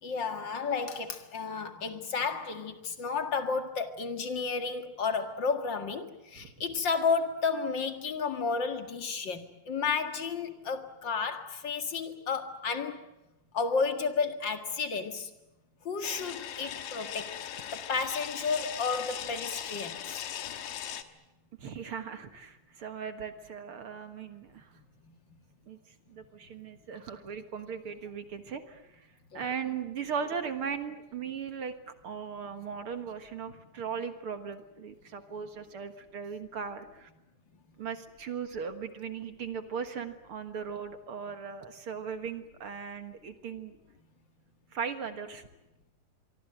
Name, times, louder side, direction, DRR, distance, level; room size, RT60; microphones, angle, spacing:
voice 1, 0.0-13.0 13.5-15.3 15.8-17.3 17.7-20.2 25.0-25.1 29.3-29.5, left 5 dB, 40° left, 2.1 m, -32 dB
sound 1, 16.0-21.0, left 10 dB, 90° left, 3.0 m, -39 dB
voice 2, 21.6-24.7 25.7-25.8 26.1-29.1 29.3-31.8 32.0-37.1 37.8-43.8 44.7-45.5, right 6 dB, 50° right, 1.9 m, -38 dB
25.5 x 24.0 x 7.8 m
omnidirectional pair, 3.7 m